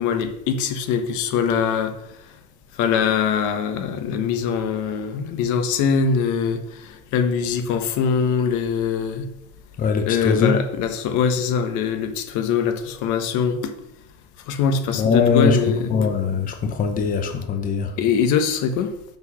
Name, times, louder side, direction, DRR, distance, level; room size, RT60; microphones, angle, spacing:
voice 1, 0.0-1.9 2.8-9.3 10.1-13.7 14.5-16.0 18.0-18.9, left 6 dB, 75° left, 1.4 m, -22 dB
voice 2, 9.8-10.6 15.0-17.9, left 5 dB, 25° left, 0.8 m, -21 dB
7.1 x 6.1 x 6.3 m
cardioid pair, 170°, 31 cm